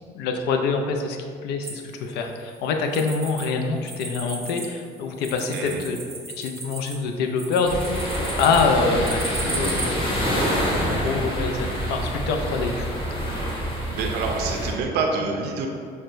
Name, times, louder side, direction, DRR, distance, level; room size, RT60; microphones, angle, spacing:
voice 1, 0.1-1.2 1.4-6.0 6.4-9.9 10.3-12.9, left 4 dB, 85° left, 4 dB, 0.4 m, -25 dB
sound 1, 1.6-3.5 3.8-9.9, right 2 dB, 15° right, 0.6 m, -35 dB
sound 2, 7.6-14.7, equal, 30° left, 1.0 m, -26 dB
voice 2, 13.9-15.7, right 4 dB, 75° right, 2 dB, 0.5 m, -26 dB
6.0 x 2.2 x 2.5 m, 2.3 s
cardioid pair, 110°, 17 cm